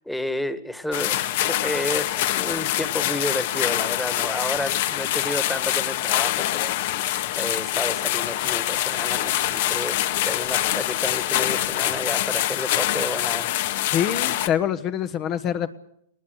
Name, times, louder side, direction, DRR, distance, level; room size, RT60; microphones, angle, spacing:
voice 1, 0.0-10.0 10.2-13.5, left 1 dB, 5° left, 11 dB, 1.7 m, -31 dB
sound 1, 0.9-14.5, left 14 dB, 55° left, 1.6 m, -25 dB
voice 2, 13.9-15.7, left 9 dB, 35° left, 10 dB, 1.2 m, -25 dB
20.0 x 19.5 x 8.1 m, 0.72 s
hypercardioid pair, 130°, 0 cm